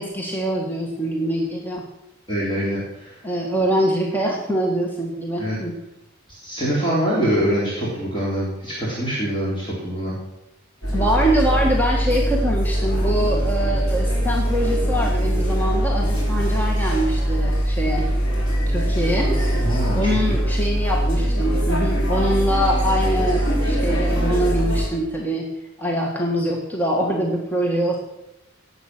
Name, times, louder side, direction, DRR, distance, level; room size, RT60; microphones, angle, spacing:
voice 1, 0.0-1.8 3.2-5.8 10.9-18.1 18.7-19.4 19.9-25.5 25.8-28.0, equal, 10° left, -1 dB, 1.6 m, -24 dB
voice 2, 2.3-3.2 5.4-5.6 6.3-10.2 19.6-20.4, equal, 25° left, -6 dB, 3.5 m, -24 dB
sound 1, 10.8-24.9, equal, 90° left, 4.3 m, -21 dB
17.5 x 7.9 x 6.0 m, 0.92 s
head